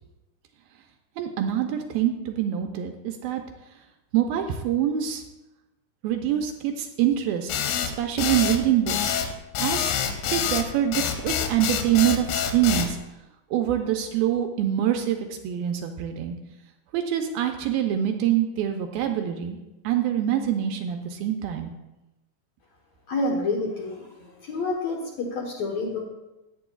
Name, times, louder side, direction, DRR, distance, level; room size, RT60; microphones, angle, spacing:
voice 1, 1.2-3.4 4.1-5.2 6.0-7.5 8.0-9.2 9.6-10.0 10.3-13.0 13.5-16.3 16.9-19.6 19.8-21.7, right 11 dB, 80° right, 4 dB, 2.3 m, -25 dB
sound 1, 7.5-12.9, left 9 dB, 80° left, 2.8 m, -26 dB
voice 2, 23.1-26.0, left 2 dB, 65° left, -1 dB, 1.9 m, -28 dB
15.0 x 10.0 x 2.4 m, 0.99 s
omnidirectional pair, 4.6 m